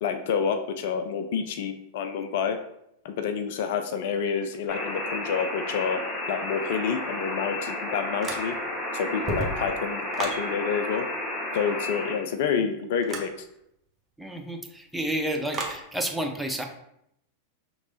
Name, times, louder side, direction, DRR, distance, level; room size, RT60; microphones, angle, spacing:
voice 1, 0.0-2.6 3.0-6.0 6.3-8.6 8.9-11.1 11.5-13.3, left 6 dB, 55° left, 8 dB, 0.4 m, -28 dB
sound 1, 4.7-12.2, left 1 dB, 20° left, 0.9 m, -32 dB
sound 2, 8.2-8.8 9.1-10.5 13.0-13.3 15.5-15.8, right 3 dB, 25° right, 0.8 m, -33 dB
voice 2, 14.2-16.6, right 1 dB, ahead, 2 dB, 0.6 m, -30 dB
5.8 x 3.0 x 2.7 m, 0.77 s
figure-of-eight pair, 90°, 0 cm